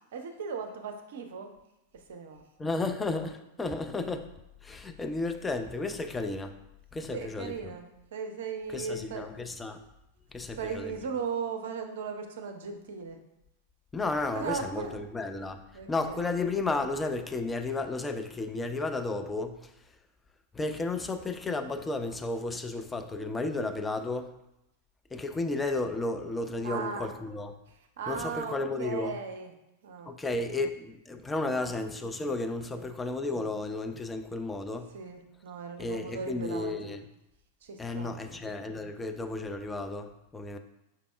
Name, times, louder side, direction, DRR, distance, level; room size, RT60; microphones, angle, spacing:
voice 1, 0.1-1.5 2.1-2.4 7.1-9.2 10.5-13.2 14.4-15.0 15.7-16.3 26.6-27.1 27.7-29.5 29.8-30.5 31.4-31.8 32.7-33.0 34.9-36.9 37.6-38.1, right 5 dB, 60° right, 0.5 m, -37 dB
voice 2, 2.6-4.3 4.6-6.6 6.9-7.7 8.7-9.8 10.3-10.9 13.9-15.6 15.9-19.7 20.5-24.4 25.1-27.5 28.1-29.2 30.1-34.9 35.8-37.0 37.8-40.6, left 2 dB, 10° left, 0.3 m, -33 dB
5.5 x 3.3 x 2.4 m
figure-of-eight pair, 90°, 0 cm